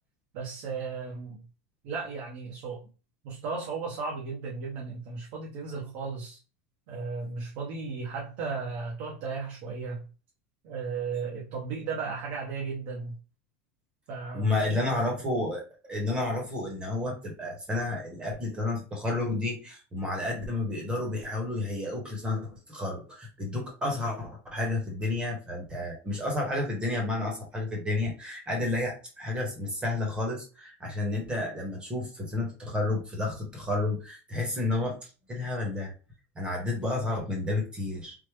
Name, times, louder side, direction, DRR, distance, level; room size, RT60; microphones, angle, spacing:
voice 1, 0.3-1.5 1.8-2.8 3.2-6.4 6.9-10.0 10.6-13.2 14.1-15.0, right 4 dB, 55° right, 0.8 m, -35 dB
voice 2, 14.3-35.0 35.3-35.9 36.4-38.2, left 2 dB, 15° right, 0.9 m, -31 dB
3.5 x 2.0 x 3.2 m
supercardioid pair, 155°, 7 cm